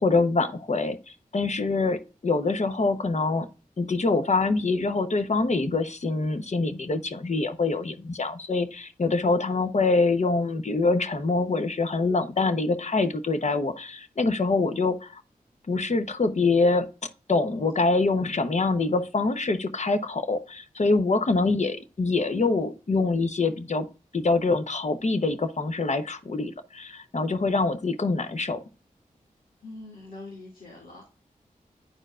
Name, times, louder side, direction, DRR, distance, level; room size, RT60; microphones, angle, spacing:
voice 1, 0.0-3.5 3.8-15.2 15.7-16.9 17.3-23.9 24.1-28.6, left 3 dB, 55° left, 8 dB, 0.9 m, -25 dB
voice 2, 29.6-31.1, left 2 dB, 80° left, -3 dB, 2.4 m, -43 dB
10.5 x 4.6 x 2.4 m, 0.32 s
cardioid pair, 50°, 14 cm